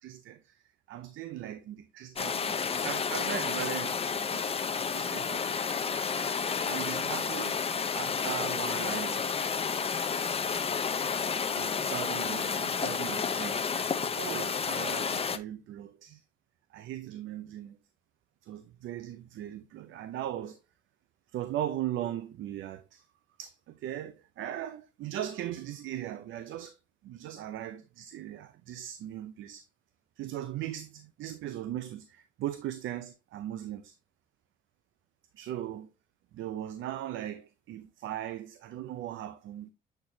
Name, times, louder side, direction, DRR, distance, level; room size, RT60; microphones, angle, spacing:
voice 1, 0.0-0.6 0.9-4.4 4.9-6.1 6.6-7.6 7.9-9.4 11.5-13.6 14.1-16.2 16.7-17.8 18.4-20.6 21.3-23.1 23.4-26.8 27.0-29.6 30.2-33.9 35.3-35.9 36.3-39.7, right 12 dB, 80° right, 0.6 m, -39 dB
sound 1, 2.2-15.4, left 6 dB, 30° left, 0.6 m, -31 dB
7.9 x 4.4 x 2.7 m
cardioid pair, 90°, 20 cm